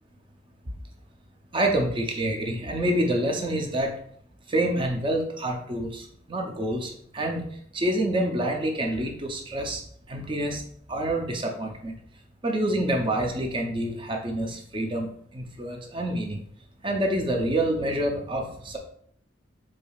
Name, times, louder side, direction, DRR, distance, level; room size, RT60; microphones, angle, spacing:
voice 1, 1.5-3.9 4.5-7.4 7.7-9.8 10.1-10.6 10.9-11.9 12.4-16.4 16.8-18.8, right 1 dB, 25° right, 3 dB, 0.5 m, -27 dB
4.7 x 2.7 x 2.3 m, 0.64 s
head